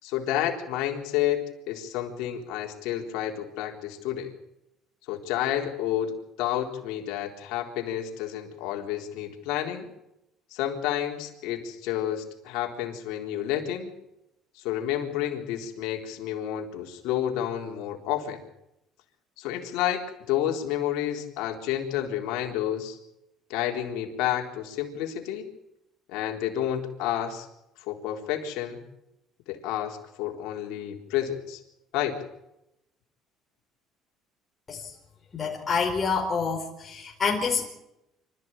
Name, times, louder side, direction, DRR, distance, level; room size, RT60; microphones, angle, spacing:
voice 1, 0.0-4.3 5.1-9.9 10.5-13.9 14.6-18.4 19.4-23.0 23.5-25.5 26.1-27.5 27.9-28.8 29.5-31.6 31.9-32.2, left 11 dB, 80° left, 2 dB, 3.8 m, -30 dB
voice 2, 35.3-37.7, left 5 dB, 30° left, -2 dB, 4.7 m, -27 dB
26.5 x 14.5 x 8.9 m, 0.87 s
cardioid pair, 100°, 0 cm